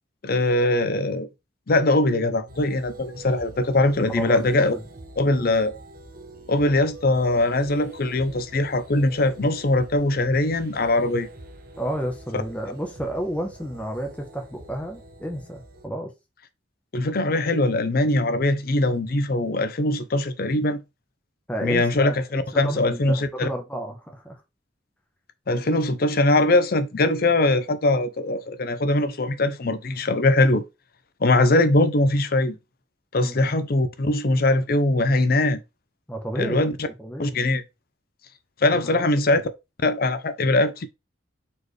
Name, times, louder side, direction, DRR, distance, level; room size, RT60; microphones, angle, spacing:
voice 1, 0.2-1.3 1.7-4.7 5.2-5.7 6.5-11.3 16.9-20.8 21.6-23.5 25.5-30.6 31.2-32.6 33.1-35.6 36.4-36.7 37.2-37.6 38.6-39.4 39.8-40.9, left 2 dB, 55° left, 0.6 m, -21 dB
sound 1, 2.5-15.9, right 1 dB, 50° right, 0.8 m, -44 dB
voice 2, 4.1-4.8 11.8-16.1 21.5-24.4 33.2-33.5 36.1-36.6 37.0-37.3 38.8-39.2, right 1 dB, 5° left, 0.8 m, -32 dB
4.3 x 3.2 x 3.2 m
head